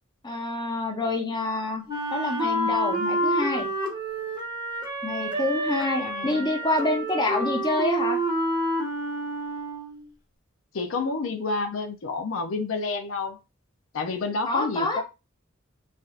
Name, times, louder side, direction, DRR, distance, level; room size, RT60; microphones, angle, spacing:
voice 1, 0.2-1.8 2.1-3.7 5.0-8.2 14.5-15.0, left 2 dB, 20° left, 0.8 m, -27 dB
Wind instrument woodwind instrument, 1.9-10.1, right 1 dB, 20° right, 0.9 m, -28 dB
voice 2, 6.0-6.5 10.7-13.4 13.9-15.0, left 3 dB, 85° left, 0.5 m, -29 dB
3.3 x 2.6 x 2.4 m
head